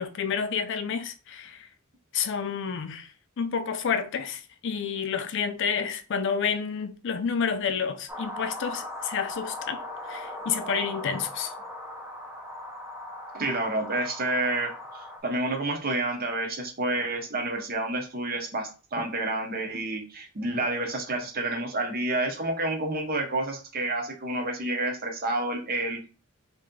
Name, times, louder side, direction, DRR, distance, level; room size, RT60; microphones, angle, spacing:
voice 1, 0.0-1.7 2.1-9.8 10.1-11.5, left 6 dB, 60° left, 0.4 m, -29 dB
sound 1, 8.1-15.2, left 1 dB, 15° right, 0.7 m, -39 dB
voice 2, 13.3-26.1, right 2 dB, 45° right, 0.8 m, -29 dB
3.2 x 2.7 x 3.7 m
head